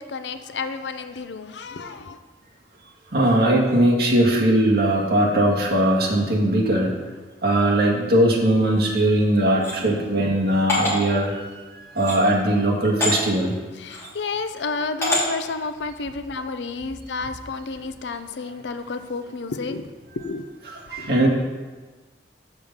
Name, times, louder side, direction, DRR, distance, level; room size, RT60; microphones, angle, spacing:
voice 1, 0.0-2.2 13.8-19.9 20.2-20.4 21.0-21.3, left 4 dB, 80° left, 10 dB, 0.6 m, -31 dB
voice 2, 3.1-6.9 7.4-11.5 11.8-13.5 20.9-21.3, right 1 dB, 60° right, -3 dB, 1.8 m, -20 dB
sound 1, 9.6-9.8 10.7-11.0 12.0-12.2 13.0-13.1 13.9-14.1 15.0-15.2, left 1 dB, 15° left, 2.8 m, -24 dB
6.8 x 5.4 x 7.2 m, 1.3 s
head